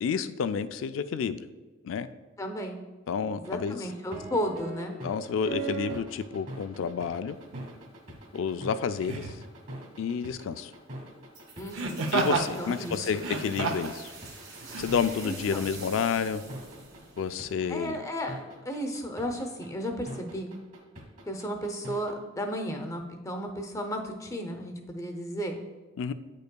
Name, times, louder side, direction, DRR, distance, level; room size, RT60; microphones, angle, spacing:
voice 1, 0.0-1.4 1.8-2.1 3.1-3.9 5.0-7.4 8.3-9.3 10.0-10.7 12.1-14.1 14.8-16.4 17.2-18.0 26.0-26.1, left 6 dB, 75° left, 12 dB, 0.3 m, -30 dB
voice 2, 2.4-2.8 3.4-5.0 11.6-12.0 12.6-13.2 15.2-15.6 17.7-20.5 21.3-25.6, equal, 15° left, 4 dB, 0.6 m, -34 dB
sound 1, 3.4-22.1, right 3 dB, 45° right, 1.5 m, -41 dB
Laughter, 7.5-7.7 9.0-9.4 11.7-12.5 13.1-14.0 14.7-14.8, right 3 dB, 85° right, 0.6 m, -30 dB
sound 2, 11.3-18.0, right 3 dB, 70° right, 1.6 m, -46 dB
9.1 x 5.3 x 2.2 m, 1.2 s
head